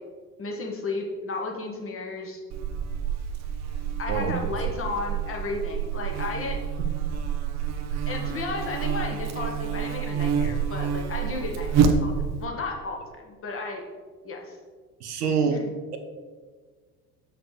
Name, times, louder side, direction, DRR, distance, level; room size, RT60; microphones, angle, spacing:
voice 1, 0.4-2.4 4.0-6.6 8.1-12.1 12.4-13.8 14.2-14.6 15.5-15.7, left 3 dB, 30° left, 1 dB, 1.3 m, -33 dB
Buzz, 2.5-12.5, right 7 dB, 35° right, 0.7 m, -28 dB
voice 2, 4.1-4.4 7.0-7.1 10.5-10.6 15.0-15.6, right 6 dB, 80° right, 6 dB, 0.8 m, -26 dB
6.6 x 6.3 x 3.2 m, 1.5 s
figure-of-eight pair, 65°, 47 cm